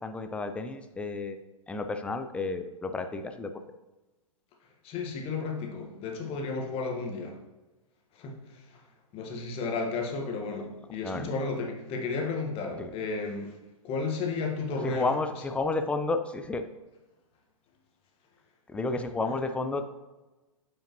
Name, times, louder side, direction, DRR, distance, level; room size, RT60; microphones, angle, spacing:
voice 1, 0.0-1.4 1.7-3.6 11.0-11.3 12.8-12.9 14.8-16.7 18.7-19.8, left 3 dB, 5° left, 8 dB, 0.4 m, -31 dB
voice 2, 4.8-7.4 8.2-8.4 9.1-13.6 13.8-15.1, left 4 dB, 30° left, 2 dB, 1.5 m, -33 dB
8.9 x 5.2 x 3.0 m, 1.1 s
hypercardioid pair, 115°, 18 cm